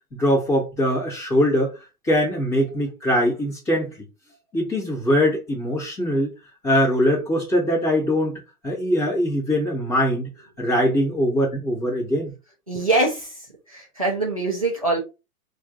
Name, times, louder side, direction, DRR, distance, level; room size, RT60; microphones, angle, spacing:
voice 1, 0.2-1.7 2.1-3.9 4.5-6.3 6.6-10.3 10.6-12.3, equal, 10° left, -9 dB, 0.9 m, -22 dB
voice 2, 12.7-15.0, right 2 dB, 25° right, -4 dB, 0.4 m, -24 dB
2.4 x 2.4 x 4.0 m, 0.28 s
hypercardioid pair, 180°, 45 cm